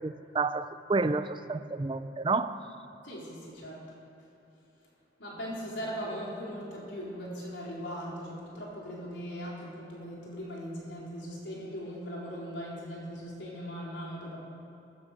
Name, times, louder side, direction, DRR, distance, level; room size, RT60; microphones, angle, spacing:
voice 1, 0.0-2.6, right 3 dB, 25° right, 12 dB, 0.5 m, -30 dB
voice 2, 3.0-3.8 5.2-14.4, equal, 75° left, -4 dB, 4.0 m, -39 dB
14.5 x 11.0 x 6.7 m, 2.9 s
head